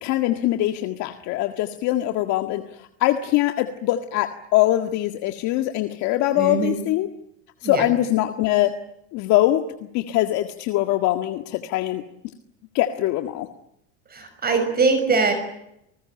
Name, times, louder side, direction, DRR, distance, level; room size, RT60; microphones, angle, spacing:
voice 1, 0.0-2.6 3.0-7.1 7.6-8.7 9.1-9.6 9.9-12.0 12.7-13.5, left 15 dB, 60° left, 7 dB, 1.9 m, -22 dB
voice 2, 6.4-6.8 7.6-7.9 14.1-15.3, right 4 dB, 30° right, 8 dB, 6.0 m, -22 dB
28.5 x 20.0 x 8.8 m, 0.80 s
supercardioid pair, 110°, 32 cm